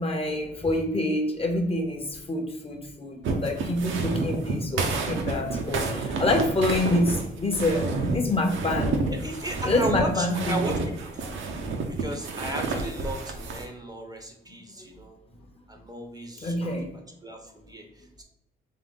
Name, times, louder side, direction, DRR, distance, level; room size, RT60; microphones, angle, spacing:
voice 1, 0.0-9.0 9.6-10.7 16.4-16.9, left 1 dB, 30° left, 4 dB, 0.8 m, -27 dB
sound 1, 3.2-13.7, right 3 dB, 75° right, 0.8 m, -30 dB
voice 2, 9.1-11.6 11.9-15.2 15.7-16.7 17.2-18.2, right 1 dB, 20° right, 3 dB, 0.7 m, -35 dB
3.7 x 3.3 x 3.7 m, 0.83 s
cardioid pair, 90°, 20 cm